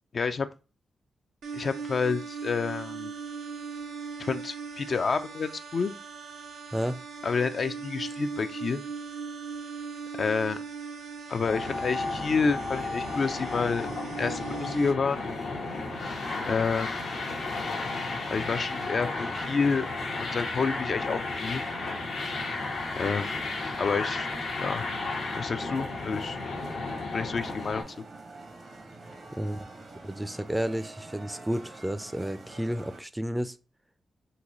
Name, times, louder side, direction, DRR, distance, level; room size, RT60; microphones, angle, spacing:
voice 1, 0.1-0.5 1.5-3.1 4.2-5.9 7.2-8.8 10.2-10.6 11.3-13.9 14.2-15.2 16.5-16.9 18.3-19.9 20.2-21.6 23.0-23.3 23.8-24.3 24.6-24.8 25.4-26.4 27.1-28.0, left 5 dB, 60° left, 0.3 m, -29 dB
sound 1, 1.4-14.9, right 5 dB, 85° right, 0.6 m, -39 dB
sound 2, 11.4-27.8, left 3 dB, 85° left, 0.9 m, -33 dB
sound 3, 15.0-33.0, right 2 dB, 65° right, 0.9 m, -47 dB
voice 2, 29.3-29.7 30.0-33.6, equal, 10° right, 0.4 m, -31 dB
3.9 x 2.6 x 3.0 m
cardioid pair, 50°, 0 cm